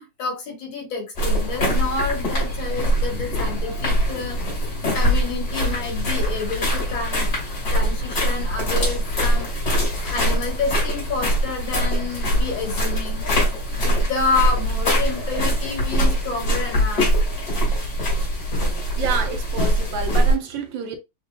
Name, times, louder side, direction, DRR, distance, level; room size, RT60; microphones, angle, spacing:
voice 1, 0.0-4.4 4.9-7.3 7.7-9.7 10.0-13.2 13.8-17.1, left 4 dB, 80° left, 2.3 m, -29 dB
sound 1, 1.1-20.3, equal, 50° left, 2.9 m, -22 dB
voice 2, 18.9-21.0, right 6 dB, 75° right, 1.4 m, -28 dB
6.4 x 2.4 x 2.2 m
omnidirectional pair, 2.2 m